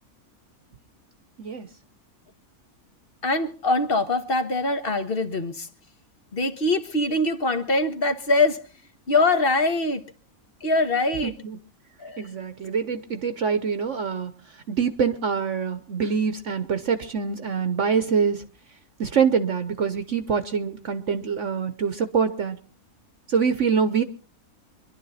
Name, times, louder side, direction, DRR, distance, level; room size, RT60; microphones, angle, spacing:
voice 1, 3.2-5.7 6.3-8.6 9.1-10.0 10.6-11.3 12.0-12.3, left 2 dB, 40° left, 1.4 m, -23 dB
voice 2, 11.2-11.6 12.2-14.3 14.7-18.4 19.0-22.6 23.3-24.0, right 6 dB, 55° right, 1.2 m, -25 dB
24.5 x 11.5 x 4.1 m
omnidirectional pair, 1.6 m